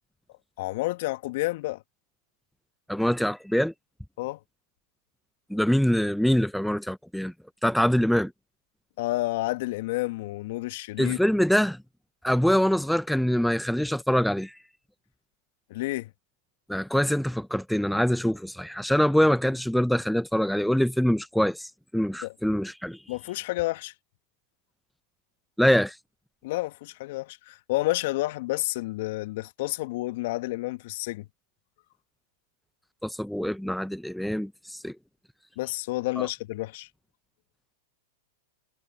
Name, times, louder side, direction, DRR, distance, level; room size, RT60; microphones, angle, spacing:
voice 1, 0.6-1.8 4.2-4.4 9.0-11.2 15.7-16.1 22.2-22.3 23.1-23.9 26.4-31.3 35.6-36.9, left 19 dB, 60° left, 2.3 m, -30 dB
voice 2, 2.9-3.7 5.5-7.3 7.6-8.3 11.0-11.8 12.2-14.6 16.7-23.0 25.6-26.0 33.0-34.9 36.2-36.3, equal, ahead, 0.8 m, -24 dB
hypercardioid pair, 105°, 0 cm